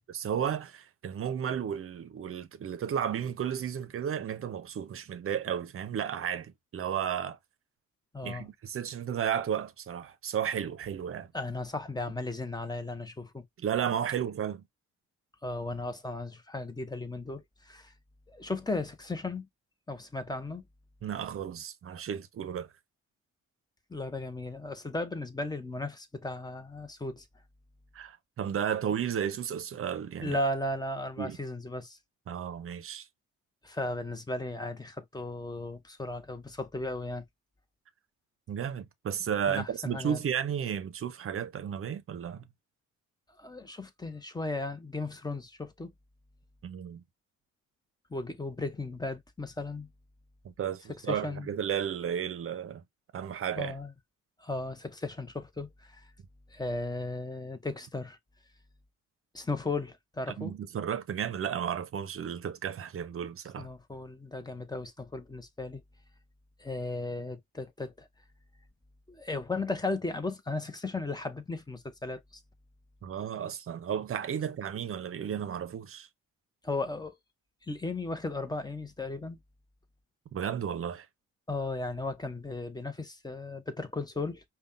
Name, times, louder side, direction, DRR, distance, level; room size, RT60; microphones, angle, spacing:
voice 1, 0.0-7.4 8.2-11.3 13.6-14.7 21.0-22.7 27.9-30.4 31.2-31.4 32.3-33.1 38.5-42.4 46.6-47.0 50.4-52.8 53.1-53.7 60.4-63.7 73.0-76.1 80.3-81.1, right 8 dB, 45° right, 0.7 m, -33 dB
voice 2, 8.1-8.5 11.3-13.5 15.4-17.9 18.3-19.5 19.9-20.6 23.9-27.2 30.2-32.0 33.6-37.2 39.5-40.2 43.4-45.9 48.1-49.9 51.1-51.5 53.5-53.9 54.4-56.1 56.5-58.2 59.3-60.5 63.6-65.8 66.6-68.1 69.1-72.2 76.6-77.2 77.7-79.4 81.5-84.4, left 2 dB, 15° left, 0.8 m, -36 dB
5.2 x 2.3 x 2.6 m
cardioid pair, 90°, 30 cm